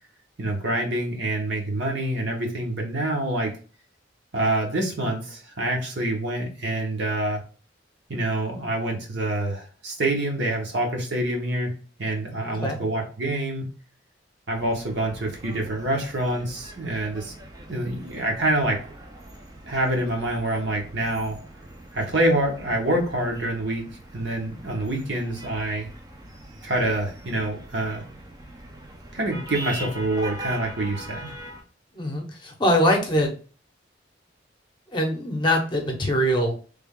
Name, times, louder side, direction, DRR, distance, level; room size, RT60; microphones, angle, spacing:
voice 1, 0.4-3.5 4.3-7.4 8.1-11.7 12.0-13.7 14.5-17.3 17.7-18.8 19.7-21.4 21.9-23.9 24.1-25.9 26.6-28.0 29.1-31.3, right 1 dB, 65° right, 1 dB, 1.0 m, -26 dB
voice 2, 12.4-12.8 31.9-33.3 34.9-36.7, equal, 25° left, 2 dB, 0.7 m, -23 dB
sound 1, 14.5-31.6, right 1 dB, 20° right, 0.5 m, -42 dB
3.3 x 2.3 x 3.6 m, 0.37 s
head